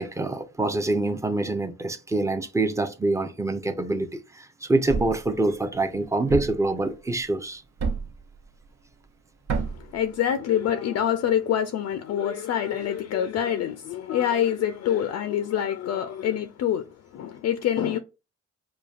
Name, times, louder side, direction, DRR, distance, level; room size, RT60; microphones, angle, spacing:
voice 1, 0.0-4.1 4.3-7.6, right 2 dB, 10° right, 0.5 m, -25 dB
Thump thud, 4.9-5.3 6.3-6.7 7.8-8.2 9.5-9.9, right 5 dB, 60° right, 0.8 m, -28 dB
voice 2, 9.6-18.0, left 10 dB, 60° left, 0.4 m, -26 dB
4.9 x 2.3 x 2.4 m
cardioid pair, 90°, 30 cm